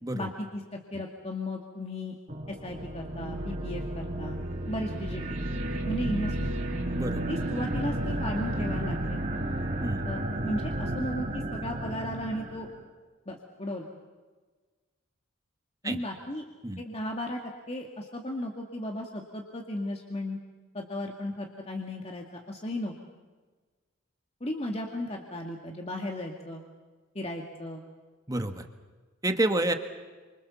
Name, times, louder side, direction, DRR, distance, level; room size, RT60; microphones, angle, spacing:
voice 1, 0.1-0.6 0.9-2.2 2.5-4.4 4.7-5.2 5.8-6.5 7.3-9.2 10.1-12.7 13.3-13.9 15.8-16.5 16.8-17.4 17.7-20.4 20.7-22.9 24.4-26.6 27.1-27.8, left 1 dB, 30° left, 2 dB, 2.2 m, -35 dB
sound 1, 2.3-12.8, right 1 dB, 35° right, 4.7 m, -32 dB
voice 2, 28.3-28.6 29.2-29.7, right 1 dB, 15° right, 6 dB, 1.7 m, -28 dB
29.0 x 26.0 x 7.1 m, 1.3 s
head